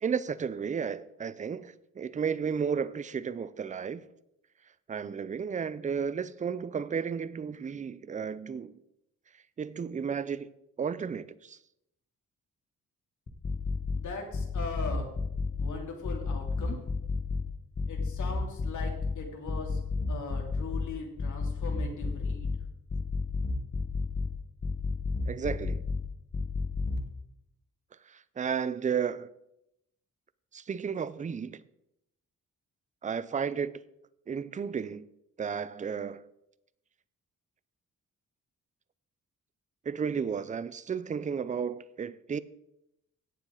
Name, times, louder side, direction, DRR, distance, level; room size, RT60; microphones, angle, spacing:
voice 1, 0.0-4.0 4.9-8.8 9.6-10.5 10.8-11.6 25.3-25.8 28.1-29.3 30.5-31.6 33.0-33.8 34.3-35.1 35.4-36.2 39.9-42.4, right 6 dB, 25° right, 0.4 m, -33 dB
sound 1, 13.3-14.0 14.3-15.7 16.0-17.4 17.8-19.1 19.5-20.9 21.2-22.6 22.9-24.3 24.6-26.0 26.3-27.0, left 3 dB, 30° left, 1.2 m, -30 dB
voice 2, 13.9-15.1 15.6-16.8 17.9-19.8 20.1-22.5, left 3 dB, 65° left, 2.8 m, -40 dB
17.0 x 7.2 x 3.8 m
wide cardioid pair, 135°, 32 cm